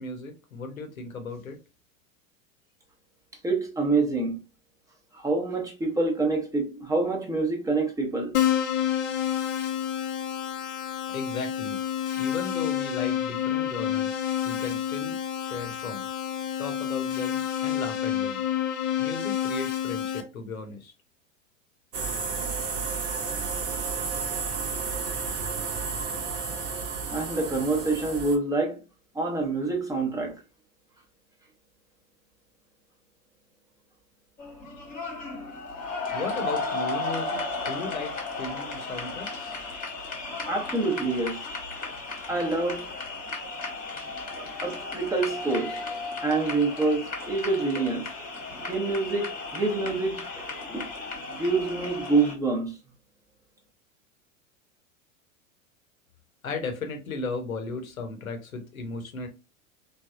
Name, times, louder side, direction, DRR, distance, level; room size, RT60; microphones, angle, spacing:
voice 1, 0.0-1.6 11.1-11.8 12.2-16.2 16.6-18.4 19.0-20.9 36.1-39.6 56.4-59.3, left 3 dB, 85° left, 0.8 m, -36 dB
voice 2, 3.4-4.4 5.1-8.3 27.1-28.8 29.1-30.4 40.5-41.4 42.3-42.9 44.6-45.8 46.2-48.1 48.7-50.9 51.3-52.8, right 3 dB, 10° right, 0.7 m, -26 dB
Keyboard (musical), 8.3-20.2, left 10 dB, 45° left, 0.6 m, -29 dB
sound 1, 21.9-28.4, right 5 dB, 65° right, 0.7 m, -32 dB
sound 2, 34.4-52.3, left 3 dB, 20° left, 1.1 m, -35 dB
3.3 x 2.2 x 2.4 m
figure-of-eight pair, 90°, 40 cm